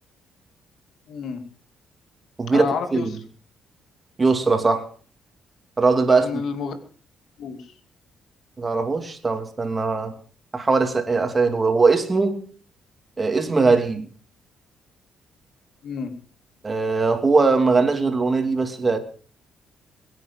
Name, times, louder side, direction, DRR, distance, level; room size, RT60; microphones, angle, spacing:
voice 1, 1.1-1.5 2.5-3.1 6.1-6.7 7.4-7.7 15.8-16.2, left 5 dB, 70° left, 8 dB, 2.6 m, -29 dB
voice 2, 2.4-3.0 4.2-4.9 5.8-6.4 8.6-10.1 10.5-12.4 13.2-14.1 16.6-19.0, right 4 dB, 25° right, 7 dB, 2.8 m, -20 dB
22.0 x 9.4 x 5.3 m, 0.41 s
cardioid pair, 90°, 0 cm